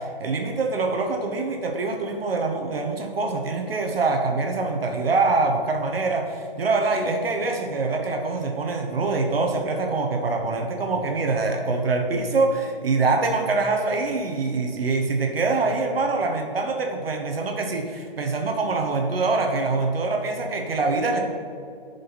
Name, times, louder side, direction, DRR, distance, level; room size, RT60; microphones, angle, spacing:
voice 1, 0.0-21.2, right 3 dB, 75° right, 3 dB, 1.2 m, -24 dB
12.0 x 5.3 x 4.1 m, 2.4 s
hypercardioid pair, 180°, 29 cm